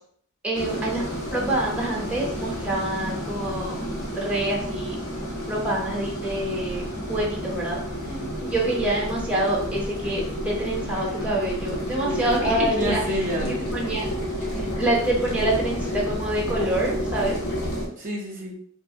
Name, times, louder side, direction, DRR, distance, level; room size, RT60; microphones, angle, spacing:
voice 1, 0.4-1.0 1.3-3.7 4.2-5.0 5.5-6.8 7.1-7.8 8.4-13.0 13.5-14.1 14.8-17.4, right 1 dB, 5° right, -3 dB, 0.7 m, -26 dB
sound 1, 0.5-17.9, equal, 90° left, 1.2 m, -30 dB
voice 2, 8.0-8.3 12.4-13.5 18.0-18.5, left 1 dB, 40° right, -1 dB, 0.6 m, -26 dB
3.2 x 2.4 x 2.7 m, 0.63 s
head